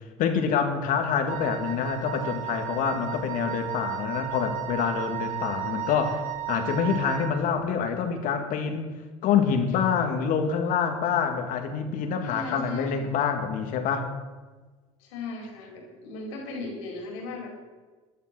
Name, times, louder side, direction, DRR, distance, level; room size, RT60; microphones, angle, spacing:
voice 1, 0.2-8.9 9.2-14.1, left 6 dB, 60° left, 6 dB, 1.9 m, -26 dB
Wind instrument woodwind instrument, 1.3-7.4, right 14 dB, 60° right, 1.7 m, -34 dB
voice 2, 12.2-13.0 15.0-17.5, left 3 dB, 80° left, 0 dB, 4.3 m, -37 dB
12.0 x 11.0 x 6.1 m, 1.3 s
hypercardioid pair, 80°, 15 cm